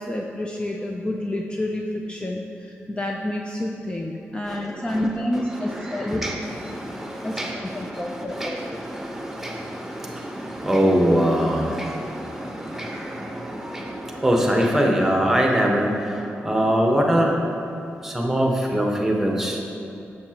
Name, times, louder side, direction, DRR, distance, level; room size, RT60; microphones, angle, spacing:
voice 1, 0.0-6.2 7.2-7.4 7.7-8.6, left 1 dB, 20° left, 1 dB, 0.5 m, -29 dB
voice 2, 5.6-16.2 16.4-17.3 18.0-19.6, equal, 5° right, 0 dB, 1.1 m, -23 dB
7.0 x 6.5 x 2.9 m, 2.9 s
cardioid pair, 70°, 5 cm